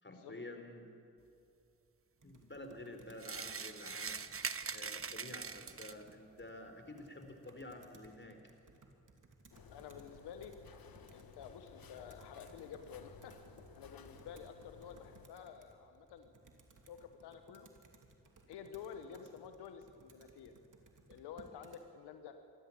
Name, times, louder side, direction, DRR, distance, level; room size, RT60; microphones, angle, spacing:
voice 1, 0.0-0.9 2.2-4.2 4.7-8.4, left 2 dB, 30° left, 5 dB, 4.2 m, -50 dB
Computer keyboard, 2.2-21.9, right 3 dB, 50° right, 2.7 m, -63 dB
sound 1, 3.2-6.1, right 5 dB, 35° right, 1.0 m, -42 dB
sound 2, 9.5-15.3, left 6 dB, 60° left, 1.5 m, -57 dB
voice 2, 9.7-10.5 11.1-16.3 16.9-17.7 18.5-20.5 21.1-22.4, left 7 dB, 90° left, 8 dB, 1.1 m, -50 dB
24.0 x 13.5 x 8.6 m, 2.5 s
supercardioid pair, 45°, 39 cm